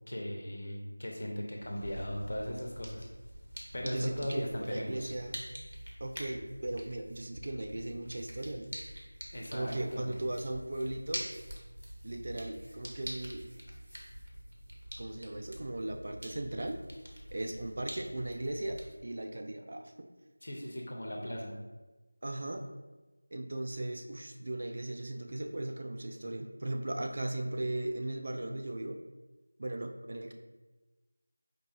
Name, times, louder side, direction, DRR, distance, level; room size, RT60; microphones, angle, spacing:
voice 1, 0.1-3.1 3.7-5.1 9.3-10.2 20.4-21.5, equal, 50° left, 0 dB, 0.6 m, -38 dB
sound 1, 1.6-18.9, equal, 75° right, 0.8 m, -46 dB
voice 2, 3.8-5.4 6.0-8.7 9.5-11.3 12.0-13.4 15.0-16.8 17.3-20.1 22.2-22.7 23.3-29.0 29.6-30.3, right 1 dB, 45° right, 4 dB, 0.3 m, -37 dB
4.5 x 2.6 x 2.4 m, 1.2 s
figure-of-eight pair, 170°, 0 cm